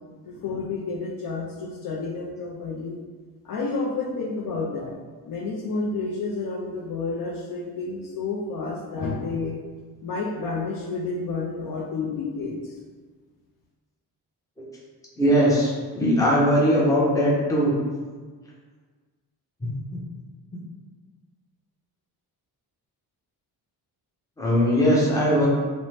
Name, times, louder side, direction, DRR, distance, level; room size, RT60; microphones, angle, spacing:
voice 1, 0.3-3.0 3.4-4.9 5.3-9.6 10.0-12.7, left 3 dB, 55° left, -2 dB, 0.5 m, -30 dB
voice 2, 15.2-17.7 24.4-25.5, equal, 10° left, -5 dB, 0.6 m, -20 dB
2.6 x 2.1 x 3.1 m, 1.4 s
cardioid pair, 120°, 41 cm